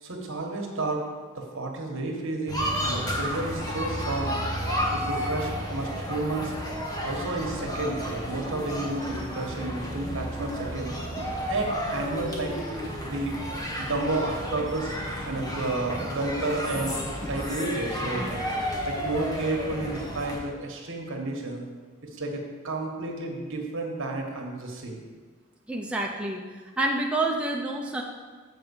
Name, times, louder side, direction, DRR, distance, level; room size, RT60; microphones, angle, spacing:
voice 1, 0.0-1.0 1.3-4.4 4.9-6.5 7.0-10.9 11.5-12.5 13.0-13.4 13.8-14.9 15.2-18.3 18.8-21.6 22.0-25.0, right 2 dB, 65° right, 1 dB, 1.4 m, -31 dB
sound 1, 2.5-20.4, equal, 20° left, 1.2 m, -32 dB
voice 2, 25.7-26.4 26.8-28.0, right 2 dB, 5° right, -1 dB, 0.6 m, -27 dB
7.5 x 4.6 x 7.0 m, 1.5 s
head